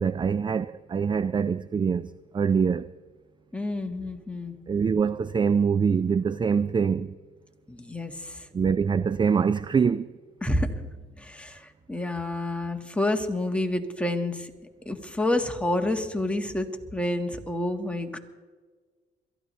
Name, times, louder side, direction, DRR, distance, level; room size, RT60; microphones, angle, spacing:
voice 1, 0.0-2.9 4.7-7.2 8.5-10.2, right 6 dB, 25° right, 0.4 m, -24 dB
voice 2, 3.5-4.6 7.7-8.5 10.4-14.5 14.8-18.2, left 1 dB, 5° left, 1.7 m, -29 dB
22.5 x 14.0 x 3.2 m
cardioid pair, 90°, 20 cm